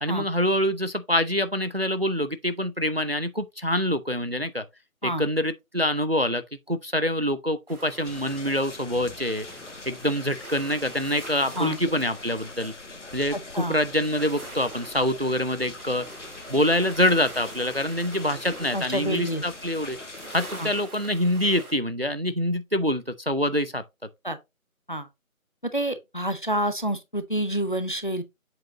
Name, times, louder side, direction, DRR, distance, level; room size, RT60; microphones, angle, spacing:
voice 1, 0.0-4.6 5.0-6.4 6.7-9.5 9.9-12.7 13.1-16.1 16.5-20.0 20.3-23.8, left 1 dB, 45° right, 0.5 m, -25 dB
sound 1, 7.7-21.7, right 1 dB, 90° right, 2.3 m, -44 dB
sound 2, 8.0-20.8, left 3 dB, 55° left, 1.2 m, -43 dB
voice 2, 13.3-13.8 18.7-19.4 20.6-20.7 24.2-24.4 24.9-25.1 25.6-28.2, right 1 dB, 35° left, 0.7 m, -28 dB
7.5 x 4.7 x 2.9 m
figure-of-eight pair, 170°, 43 cm